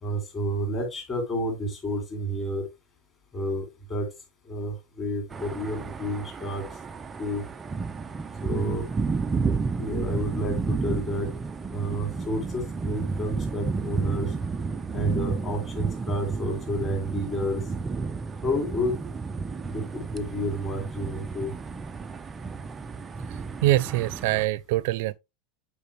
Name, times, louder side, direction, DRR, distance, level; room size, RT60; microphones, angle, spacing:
voice 1, 0.0-2.6 3.3-4.1 4.5-6.6 7.2-7.4 8.4-8.8 9.8-11.3 11.7-14.3 14.9-17.6 18.4-19.0 19.7-21.5, equal, 20° left, 2.8 m, -30 dB
sound 1, 5.3-24.5, right 4 dB, 15° right, 0.4 m, -32 dB
voice 2, 23.6-25.1, right 16 dB, 55° right, 0.6 m, -24 dB
8.5 x 4.7 x 3.3 m
supercardioid pair, 175°, 0 cm